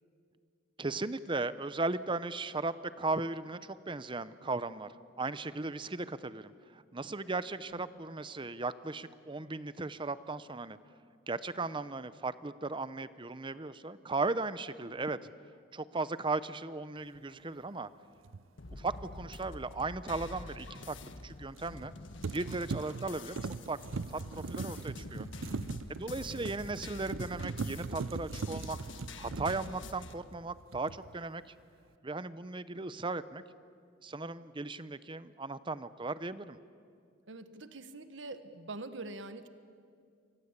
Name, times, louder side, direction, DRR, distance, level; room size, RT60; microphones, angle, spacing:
voice 1, 0.8-10.8 11.3-15.3 15.7-17.9 18.8-21.0 21.2-21.9 22.3-23.4 23.7-25.3 25.9-28.8 29.2-31.4 32.0-33.4 34.0-36.6, right 3 dB, 25° right, 15 dB, 0.7 m, -37 dB
sound 1, 18.2-18.4 21.6-21.9 22.2-30.4 30.7-31.2, right 4 dB, 85° right, 0.6 m, -40 dB
sound 2, 18.6-30.1, left 2 dB, 65° left, 1.6 m, -46 dB
voice 2, 37.3-39.5, right 2 dB, 65° right, 10 dB, 1.4 m, -44 dB
28.5 x 24.0 x 8.2 m, 2.3 s
head